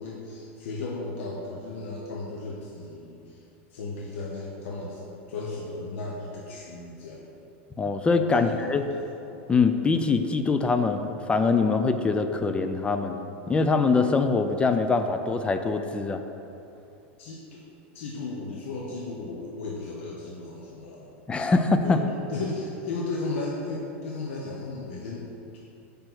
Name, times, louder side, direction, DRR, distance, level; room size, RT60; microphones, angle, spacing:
voice 1, 0.0-3.4 3.7-5.0 5.3-7.3 8.3-9.1 17.2-17.6 17.9-21.1 21.8-22.0 22.3-25.3, left 3 dB, 80° left, -3 dB, 0.9 m, -35 dB
voice 2, 7.8-8.8 9.5-16.2 21.3-22.0, left 4 dB, 15° left, 7 dB, 0.3 m, -23 dB
5.2 x 4.4 x 5.9 m, 2.8 s
supercardioid pair, 120°, 7 cm